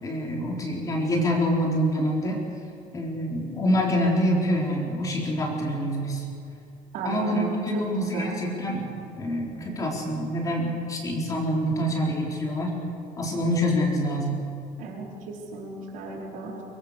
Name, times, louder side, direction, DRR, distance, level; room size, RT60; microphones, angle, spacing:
voice 1, 0.0-2.4 2.9-6.2 7.0-8.9 9.2-12.8 13.2-14.3, equal, 25° left, -1 dB, 3.9 m, -26 dB
voice 2, 6.9-7.9 8.1-8.4 14.8-16.6, right 4 dB, 65° right, -1 dB, 4.7 m, -35 dB
23.0 x 21.5 x 6.6 m, 2.6 s
cardioid pair, 165°, 14 cm